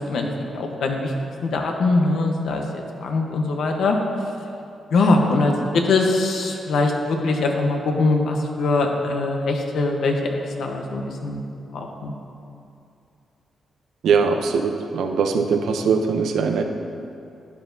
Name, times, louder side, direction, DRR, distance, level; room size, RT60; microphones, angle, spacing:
voice 1, 0.1-1.1 1.4-4.0 4.9-11.4 11.7-12.1, left 3 dB, 80° left, 2 dB, 1.0 m, -22 dB
voice 2, 14.0-16.6, right 5 dB, 85° right, 5 dB, 0.6 m, -21 dB
11.5 x 9.2 x 2.7 m, 2.6 s
cardioid pair, 95°, 0 cm